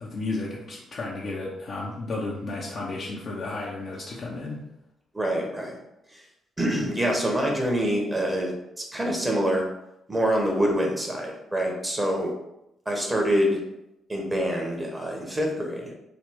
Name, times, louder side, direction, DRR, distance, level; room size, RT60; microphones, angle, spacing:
voice 1, 0.0-4.6, left 2 dB, 55° left, -5 dB, 0.7 m, -33 dB
voice 2, 5.1-5.8 6.1-6.2 6.6-8.5 8.9-9.6 10.1-12.3 12.8-13.6 14.1-15.9, equal, 20° right, 0 dB, 1.2 m, -25 dB
3.9 x 2.3 x 3.7 m, 0.85 s
hypercardioid pair, 45°, 0 cm